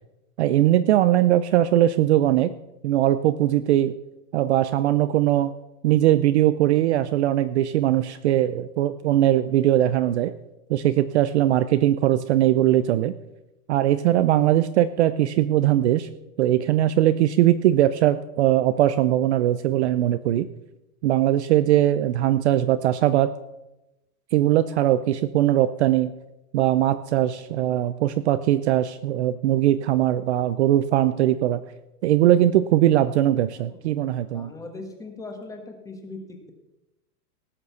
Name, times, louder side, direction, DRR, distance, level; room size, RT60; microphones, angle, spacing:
voice 1, 0.4-2.5 2.8-3.9 4.3-5.5 5.8-10.3 10.7-13.1 13.7-16.1 16.4-20.5 21.0-23.3 24.3-26.1 26.5-31.6 32.0-34.5, right 13 dB, 50° right, 13 dB, 0.5 m, -20 dB
voice 2, 33.5-36.5, left 3 dB, 5° left, 3 dB, 1.4 m, -40 dB
17.5 x 6.8 x 6.9 m, 0.97 s
supercardioid pair, 165°, 45 cm